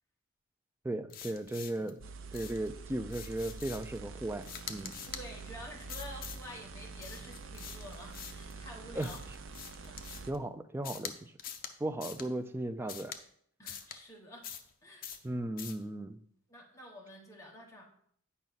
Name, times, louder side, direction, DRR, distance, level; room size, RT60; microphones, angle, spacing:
voice 1, 0.8-2.0 2.3-5.0 8.9-9.1 10.3-11.3 11.8-13.1 15.2-16.2, right 1 dB, 10° right, 9 dB, 0.3 m, -36 dB
sound 1, 1.1-1.9 2.3-2.7 3.1-4.0 4.4-5.3 5.9-6.4 7.0-8.5 9.0-10.4 10.8-11.1 11.4-11.7 12.0-12.3 12.9-13.2 13.7-14.0 14.4-14.7 15.0-15.3 15.6-15.8, left 8 dB, 45° left, 0.6 m, -45 dB
sound 2, 2.0-10.3, right 4 dB, 65° right, 0.6 m, -46 dB
voice 2, 5.1-9.2 9.8-10.0 13.6-14.5 14.8-15.1 16.5-17.9, left 1 dB, 15° left, -1 dB, 1.0 m, -49 dB
8.9 x 5.5 x 4.0 m, 0.65 s
head